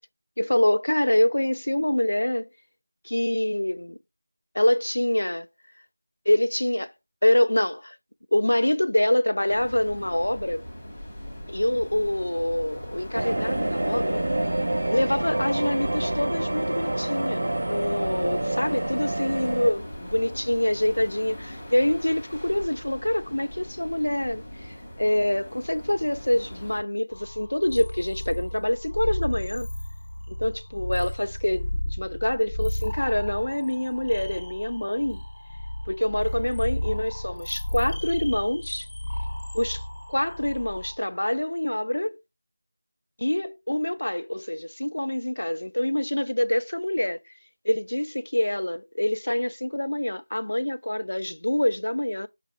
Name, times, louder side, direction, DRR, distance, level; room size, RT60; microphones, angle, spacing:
voice 1, 0.4-2.5 3.0-4.0 4.5-5.5 6.3-6.9 7.2-8.0 8.3-10.7 11.5-14.2 14.9-29.7 30.3-35.2 35.9-38.9 39.5-39.8 40.1-42.2 43.2-47.2 47.6-52.3, left 1 dB, 75° left, 0.3 m, -25 dB
sound 1, 9.5-26.8, equal, 5° left, 0.8 m, -41 dB
sound 2, 13.1-19.7, right 1 dB, 45° right, 0.3 m, -27 dB
sound 3, 27.1-40.9, left 1 dB, 30° left, 0.8 m, -33 dB
5.7 x 2.3 x 3.2 m
figure-of-eight pair, 180°, 0 cm